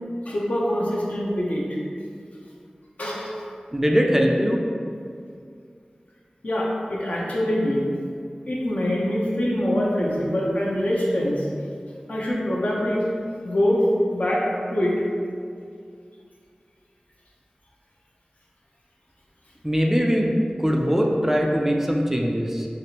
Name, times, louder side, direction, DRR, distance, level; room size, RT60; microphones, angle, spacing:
voice 1, 0.3-1.6 3.0-3.4 6.4-7.9 8.4-11.5 12.1-13.0 13.4-13.8 14.1-14.4 14.7-14.9, left 1 dB, 60° left, -4 dB, 0.6 m, -24 dB
voice 2, 3.7-4.6 19.6-20.3 20.6-22.7, equal, 15° right, 0 dB, 0.3 m, -21 dB
3.3 x 2.4 x 2.8 m, 2.3 s
wide cardioid pair, 40°, 3 cm